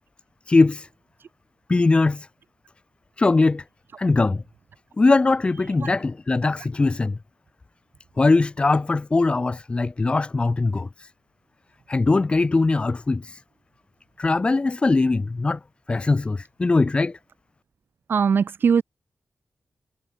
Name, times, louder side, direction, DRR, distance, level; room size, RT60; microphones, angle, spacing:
voice 1, 0.5-0.9 1.7-2.3 3.2-3.6 4.0-4.4 5.0-7.2 8.2-11.1 11.9-13.4 14.2-15.6 15.9-17.2, left 3 dB, 25° left, 0.6 m, -21 dB
voice 2, 18.1-18.8, right 6 dB, 55° right, 0.4 m, -19 dB
wide cardioid pair, 175°, 4 cm